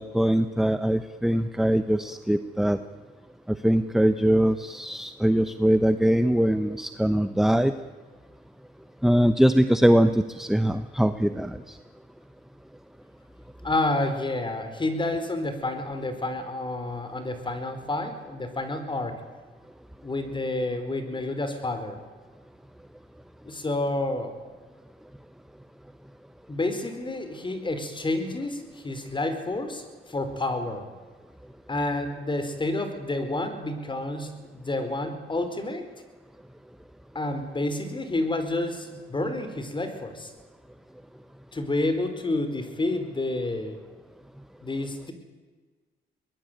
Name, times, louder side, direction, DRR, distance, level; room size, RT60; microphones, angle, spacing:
voice 1, 0.0-2.8 3.5-7.7 9.0-11.6, right 1 dB, ahead, 11 dB, 1.0 m, -22 dB
voice 2, 13.6-19.2 20.0-22.0 23.4-24.3 26.5-30.8 31.7-35.8 37.1-40.3 41.5-43.8 44.6-45.1, left 2 dB, 25° left, 8 dB, 4.4 m, -29 dB
23.5 x 20.5 x 9.2 m, 1.4 s
cardioid pair, 95°, 20 cm